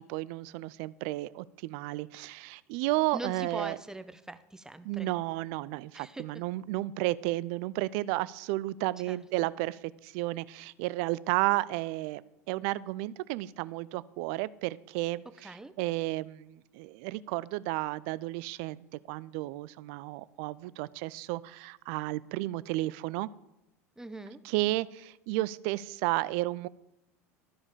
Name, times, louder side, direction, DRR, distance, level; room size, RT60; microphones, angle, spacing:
voice 1, 0.0-3.8 4.8-12.2 12.5-15.5 15.8-23.3 24.4-26.7, right 18 dB, 55° right, 19 dB, 0.3 m, -32 dB
voice 2, 3.1-5.1 5.9-6.2 9.1-9.5 15.4-15.7 24.0-24.4, right 2 dB, 5° right, 11 dB, 0.6 m, -42 dB
13.0 x 5.0 x 5.0 m, 0.88 s
hypercardioid pair, 80°, 8 cm